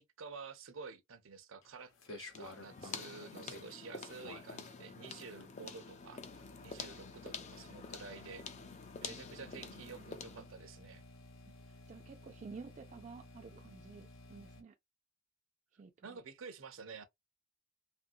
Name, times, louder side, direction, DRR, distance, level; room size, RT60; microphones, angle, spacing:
voice 1, 0.0-8.4 9.0-11.0 16.0-17.0, right 5 dB, 75° right, 0.6 m, -50 dB
sound 1, 1.6-14.6, left 2 dB, 80° left, 0.8 m, -55 dB
sound 2, 2.3-10.5, left 5 dB, 35° left, 0.4 m, -48 dB
voice 2, 9.5-10.5 11.7-14.7 15.7-16.2, right 5 dB, 35° right, 0.4 m, -52 dB
3.0 x 2.6 x 2.6 m
head